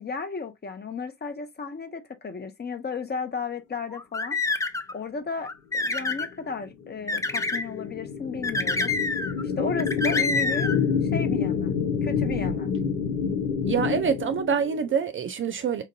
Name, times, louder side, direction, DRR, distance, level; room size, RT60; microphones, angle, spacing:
voice 1, 0.0-4.4 4.9-8.9 9.6-10.8 11.1-11.7 12.0-12.7, left 4 dB, 30° left, 0.9 m, -34 dB
sound 1, 3.9-4.9 5.4-6.3 7.1-7.7 8.4-9.4 9.8-10.8, left 3 dB, 10° left, 0.5 m, -27 dB
sound 2, 6.2-15.0, left 6 dB, 75° left, 0.9 m, -28 dB
voice 2, 13.6-15.8, right 6 dB, 35° right, 0.6 m, -26 dB
5.2 x 2.5 x 2.6 m
figure-of-eight pair, 45°, 35 cm